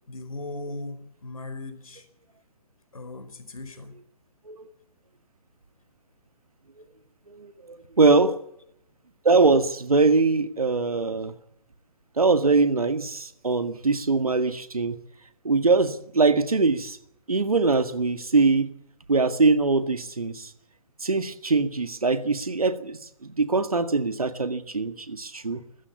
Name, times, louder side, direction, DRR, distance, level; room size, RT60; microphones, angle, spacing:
voice 1, 0.1-2.0 2.9-3.9 8.0-8.2, left 2 dB, 65° left, 9 dB, 4.6 m, -38 dB
voice 2, 7.3-8.3 9.2-11.3 12.2-15.0 15.4-17.0 17.3-18.7 19.1-20.5 21.0-25.6, right 3 dB, 70° right, 10 dB, 1.9 m, -22 dB
21.0 x 15.0 x 8.3 m, 0.78 s
figure-of-eight pair, 135°, 19 cm